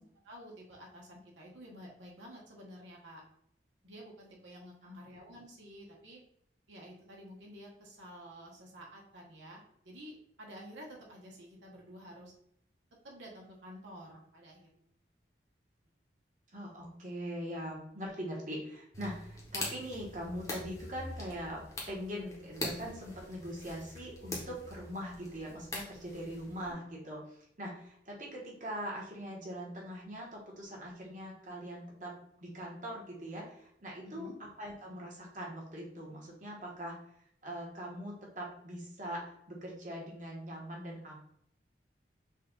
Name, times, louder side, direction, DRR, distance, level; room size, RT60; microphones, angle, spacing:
voice 1, 0.0-3.2 3.8-6.2 6.7-12.3 13.0-14.9 34.0-34.3, equal, 85° right, -2 dB, 1.2 m, -51 dB
voice 2, 4.8-5.2 16.5-32.1 32.4-36.9 37.4-41.2, equal, 45° right, -3 dB, 1.3 m, -42 dB
sound 1, 18.9-26.7, left 1 dB, 15° left, 0.9 m, -43 dB
5.6 x 2.5 x 3.7 m, 0.70 s
head